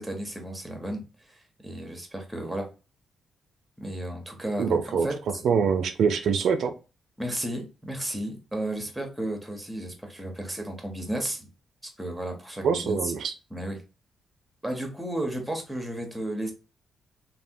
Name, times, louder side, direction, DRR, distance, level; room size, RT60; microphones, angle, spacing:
voice 1, 0.0-2.7 3.8-5.4 7.2-11.5 12.0-13.1 13.5-13.8 14.6-16.5, right 1 dB, 5° right, 0.7 m, -33 dB
voice 2, 4.6-5.1 5.4-6.7 12.6-13.3, right 6 dB, 70° right, 0.3 m, -24 dB
3.4 x 2.1 x 2.6 m
wide cardioid pair, 155°, 0 cm